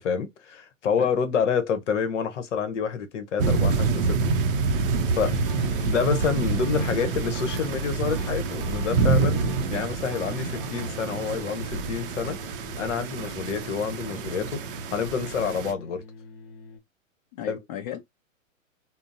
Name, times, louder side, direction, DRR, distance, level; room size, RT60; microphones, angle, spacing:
voice 1, 0.0-4.2 4.7-4.8 5.1-5.3 5.8-16.0 17.5-17.6, left 6 dB, 60° left, 0.8 m, -28 dB
sound 1, 3.4-15.7, right 4 dB, 40° right, 0.5 m, -27 dB
sound 2, 5.1-16.8, left 5 dB, 45° left, 1.3 m, -46 dB
sound 3, 5.4-5.8 6.1-7.8 8.1-9.8 10.1-11.3, equal, ahead, 1.1 m, -47 dB
voice 2, 17.3-18.0, left 10 dB, 30° left, 0.5 m, -36 dB
3.7 x 2.0 x 2.4 m
figure-of-eight pair, 115°, 41 cm